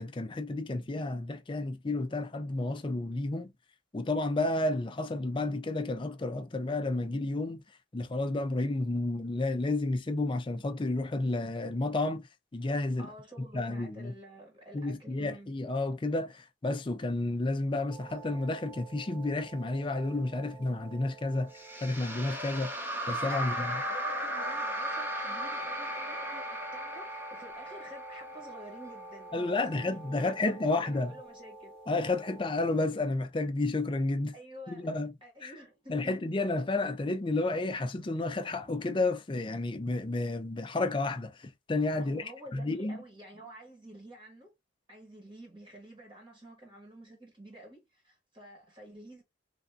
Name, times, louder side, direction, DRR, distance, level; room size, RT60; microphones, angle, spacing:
voice 1, 0.0-3.5 3.9-7.6 7.9-12.3 12.5-13.1 13.5-14.1 14.7-22.7 23.1-23.8 29.3-31.1 31.9-34.3 34.7-35.1 35.4-35.5 35.9-43.0, left 2 dB, 25° left, 0.4 m, -31 dB
voice 2, 13.0-15.5 23.3-31.8 34.3-34.8 35.2-36.2 42.0-44.5 44.9-49.2, right 1 dB, 25° right, 1.3 m, -50 dB
sound 1, 17.9-32.6, equal, 5° left, 1.0 m, -46 dB
sound 2, 21.5-28.8, right 1 dB, 10° right, 0.7 m, -36 dB
3.4 x 2.5 x 2.5 m
head